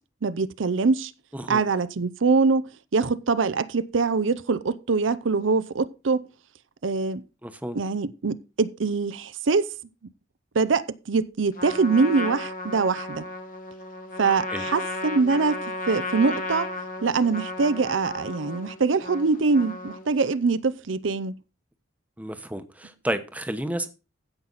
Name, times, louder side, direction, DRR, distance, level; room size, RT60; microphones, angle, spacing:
voice 1, 0.2-1.1 1.5-6.2 6.8-7.2 7.7-9.7 10.5-13.2 14.2-15.6 15.9-16.7 17.0-21.4, right 4 dB, 80° right, 0.6 m, -23 dB
voice 2, 7.4-7.8 14.5-14.7 22.2-23.9, right 1 dB, 10° right, 1.0 m, -31 dB
Trumpet, 11.5-20.2, left 2 dB, 45° left, 1.8 m, -34 dB
15.5 x 5.9 x 4.0 m
head